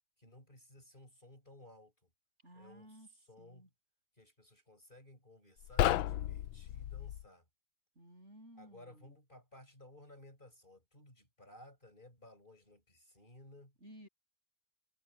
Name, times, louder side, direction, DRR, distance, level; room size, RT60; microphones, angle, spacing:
voice 1, 0.2-2.1 2.5-3.7 4.2-7.4 8.6-13.7, left 1 dB, 25° left, 6.6 m, -58 dB
voice 2, 2.4-3.1 3.4-3.7 7.9-9.1 13.8-14.1, equal, 35° right, 8.4 m, -56 dB
sound 1, 5.6-7.3, left 13 dB, 85° left, 1.4 m, -33 dB
omnidirectional pair, 2.1 m